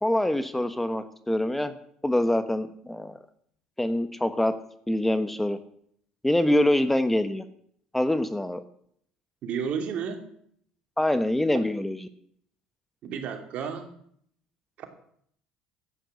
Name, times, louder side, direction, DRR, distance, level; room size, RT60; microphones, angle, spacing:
voice 1, 0.0-1.8 2.0-3.2 3.8-4.5 4.9-5.6 6.2-7.4 7.9-8.6 11.0-12.1, left 1 dB, 5° left, 11 dB, 1.2 m, -25 dB
voice 2, 9.4-10.3 11.5-11.7 13.0-13.9 14.8-14.9, right 7 dB, 60° right, 6 dB, 2.6 m, -32 dB
13.0 x 9.0 x 8.2 m, 0.66 s
supercardioid pair, 75°, 2 cm